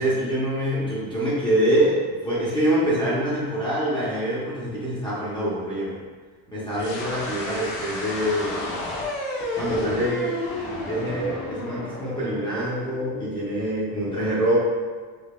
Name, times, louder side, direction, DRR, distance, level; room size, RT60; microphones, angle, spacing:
voice 1, 0.0-5.9 6.5-8.7 9.6-10.4 10.9-14.6, right 1 dB, 10° left, -9 dB, 0.7 m, -25 dB
sound 1, 6.7-13.6, left 2 dB, 80° left, 0.9 m, -32 dB
4.7 x 2.6 x 2.3 m, 1.5 s
cardioid pair, 155°, 42 cm